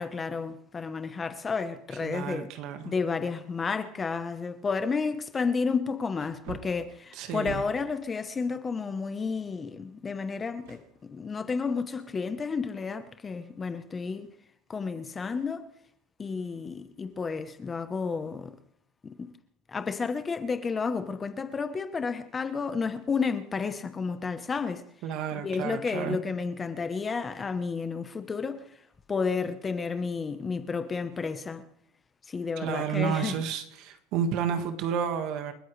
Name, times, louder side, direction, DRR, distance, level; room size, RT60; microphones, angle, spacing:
voice 1, 0.0-2.5 2.8-14.3 14.7-15.7 16.2-18.6 19.0-19.3 19.7-24.9 25.3-31.7 32.2-33.4, left 5 dB, 15° left, 0.9 m, -31 dB
voice 2, 2.0-2.9 7.2-7.6 25.0-26.2 32.6-35.5, right 8 dB, 50° right, 1.6 m, -31 dB
Wood, 4.1-4.2 4.8-4.9 6.2-8.0 10.6-11.4 11.8-11.9, right 8 dB, 70° right, 1.7 m, -44 dB
29.0 x 14.0 x 3.3 m
cardioid pair, 160°, 0 cm